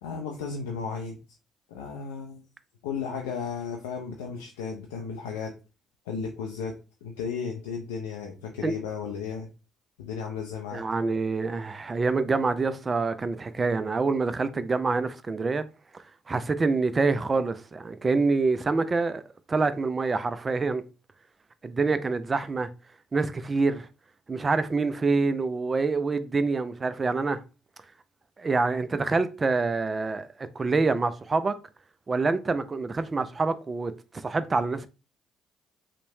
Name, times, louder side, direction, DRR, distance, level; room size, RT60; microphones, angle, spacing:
voice 1, 0.0-1.2 1.7-2.4 2.8-5.5 6.1-6.7 7.0-9.5 10.0-10.8, left 6 dB, 90° left, 0.3 m, -34 dB
voice 2, 10.7-15.6 16.3-19.2 19.5-20.8 21.6-22.7 23.1-23.9 24.3-27.4 28.4-31.6 32.1-33.9 34.2-34.9, right 3 dB, 35° right, 0.3 m, -26 dB
3.0 x 2.1 x 2.7 m
hypercardioid pair, 55°, 0 cm